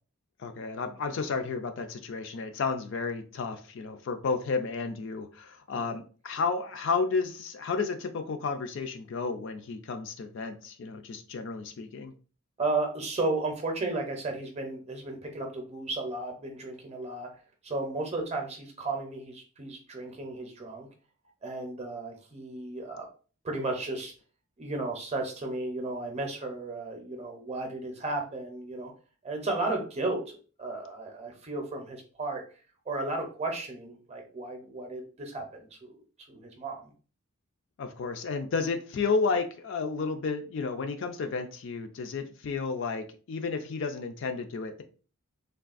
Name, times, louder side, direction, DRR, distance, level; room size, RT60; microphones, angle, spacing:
voice 1, 0.4-12.1 37.8-44.8, left 4 dB, 55° left, 7 dB, 0.3 m, -32 dB
voice 2, 12.6-17.3 17.6-20.9 21.4-23.1 23.4-24.1 24.6-28.9 29.2-32.4 32.9-36.0 36.3-36.9, right 2 dB, 30° right, 2 dB, 0.6 m, -34 dB
3.4 x 2.3 x 2.4 m, 0.38 s
head